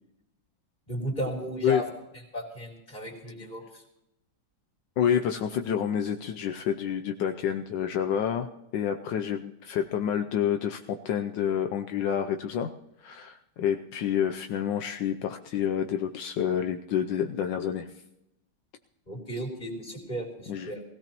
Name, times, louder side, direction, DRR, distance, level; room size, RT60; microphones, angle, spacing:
voice 1, 0.9-1.8 2.3-3.8 19.1-20.8, right 1 dB, 20° left, -1 dB, 3.4 m, -35 dB
voice 2, 5.0-12.7 13.0-17.9 20.5-20.7, left 8 dB, 75° left, 6 dB, 1.3 m, -28 dB
20.0 x 16.5 x 3.0 m, 0.87 s
omnidirectional pair, 2.0 m